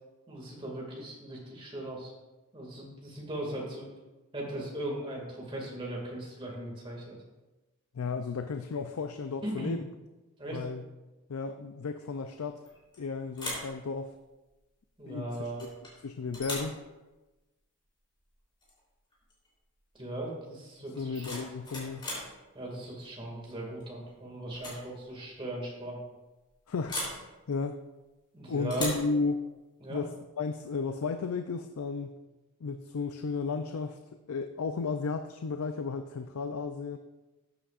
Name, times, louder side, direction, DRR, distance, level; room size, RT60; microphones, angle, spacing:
voice 1, 0.3-2.1 2.5-3.9 4.3-7.2 9.4-9.7 10.4-10.7 15.0-15.7 19.9-21.3 22.5-26.0 28.3-29.0 29.8-30.0, right 1 dB, 25° right, -2 dB, 2.2 m, -38 dB
voice 2, 7.9-9.8 10.5-10.8 11.3-12.6 13.0-14.1 15.1-15.7 16.0-16.8 21.0-22.1 26.7-27.0 27.5-27.8 28.5-29.4 29.9-32.2 32.6-34.0 34.3-37.0, left 4 dB, 90° left, 8 dB, 0.5 m, -34 dB
sound 1, 12.6-13.0 13.3-13.7 15.6-15.9 16.3-16.8 18.6-18.8 19.1-19.5 20.9-22.3 23.8-24.1 24.5-24.8 25.1-25.2 26.9-27.2 28.7-29.1, left 2 dB, 20° left, 3.5 m, -38 dB
13.0 x 8.6 x 2.5 m, 1.1 s
head